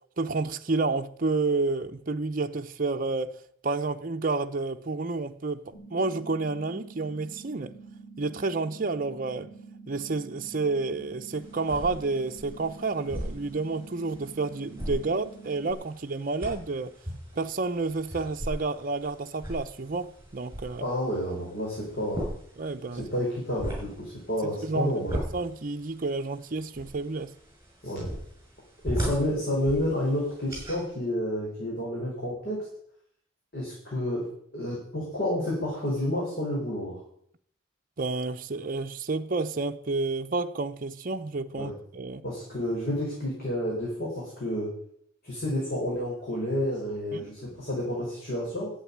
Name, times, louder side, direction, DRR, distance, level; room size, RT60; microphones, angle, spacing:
voice 1, 0.2-3.4 3.6-7.7 8.2-9.5 9.9-16.9 17.3-20.8 22.6-23.1 24.6-24.9 25.3-27.3 38.0-42.2 47.1-47.3, right 3 dB, 45° right, 0.7 m, -30 dB
sound 1, 5.7-15.7, right 4 dB, 75° left, 6.7 m, -47 dB
sound 2, 11.3-30.8, equal, 15° right, 6.5 m, -39 dB
voice 2, 20.8-22.3 23.1-25.2 27.8-28.1 28.8-32.6 33.5-34.2 34.5-37.0 41.5-41.7 42.2-44.7 45.2-48.7, left 1 dB, 50° left, 5.3 m, -30 dB
11.5 x 8.1 x 10.0 m
head